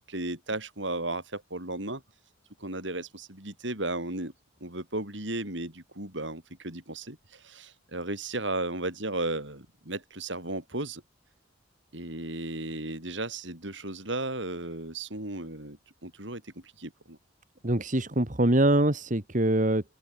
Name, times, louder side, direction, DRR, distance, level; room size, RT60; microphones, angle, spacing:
voice 1, 0.1-2.0 2.6-4.3 4.6-11.0 11.9-17.2, right 2 dB, 70° right, 7.0 m, -35 dB
voice 2, 17.6-19.8, right 1 dB, 40° right, 2.1 m, -24 dB
open air
head